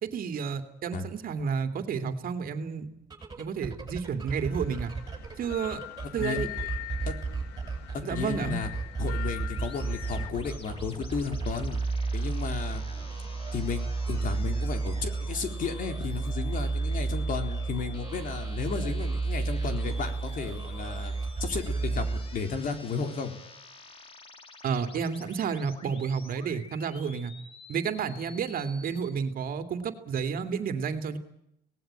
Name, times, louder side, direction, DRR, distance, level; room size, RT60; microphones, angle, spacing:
voice 1, 0.0-2.9 3.4-4.9 5.4-5.8 6.1-6.5 8.0-8.6 24.6-27.3 27.7-31.2, right 6 dB, 60° right, 8 dB, 2.6 m, -31 dB
sound 1, 3.0-22.7, right 3 dB, 20° right, 7.6 m, -33 dB
sound 2, 4.4-10.3, left 17 dB, 80° left, 2.1 m, -42 dB
voice 2, 8.1-8.7 9.0-11.8 12.1-12.8 13.5-21.1 21.4-23.3, left 5 dB, 55° left, 6 dB, 4.0 m, -34 dB
sound 3, 9.4-29.1, left 4 dB, 35° left, 3.1 m, -50 dB
25.5 x 18.5 x 9.0 m, 0.83 s
cardioid pair, 110°, 17 cm